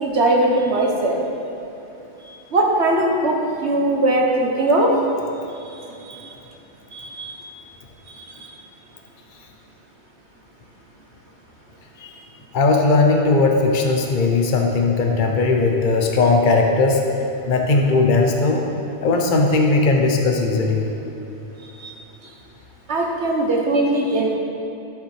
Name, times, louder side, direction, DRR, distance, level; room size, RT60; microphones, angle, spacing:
voice 1, 0.0-1.2 2.5-4.9 6.1-6.2 6.9-7.4 22.9-24.4, right 2 dB, 65° right, 0 dB, 1.4 m, -20 dB
voice 2, 12.5-17.0 17.5-18.6 19.0-20.9, left 3 dB, 45° left, 2 dB, 1.0 m, -18 dB
11.0 x 7.0 x 4.9 m, 2.9 s
omnidirectional pair, 1.2 m